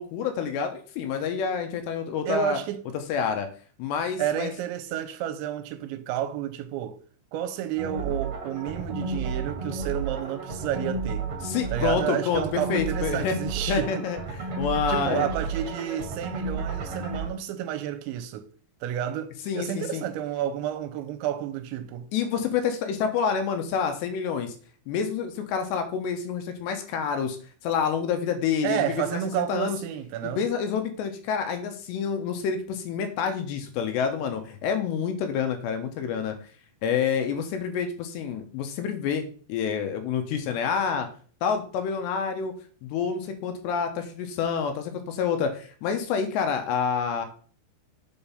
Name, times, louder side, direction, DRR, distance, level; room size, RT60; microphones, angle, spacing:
voice 1, 0.0-2.6 3.1-3.5 3.8-4.5 11.4-13.3 13.7-14.2 14.6-15.3 19.5-20.0 22.1-24.5 24.9-27.4 27.6-29.2 29.5-29.8 30.2-36.4 36.8-39.2 39.5-41.1 41.4-42.5 42.8-47.3, left 6 dB, 80° left, 2.9 m, -28 dB
voice 2, 2.2-2.8 4.2-7.0 7.3-11.3 11.7-14.1 14.9-18.5 18.8-22.1 28.6-30.4, right 11 dB, 85° right, 3.0 m, -30 dB
sound 1, 7.8-17.3, right 4 dB, 40° right, 2.4 m, -32 dB
7.2 x 4.6 x 5.5 m
omnidirectional pair, 5.3 m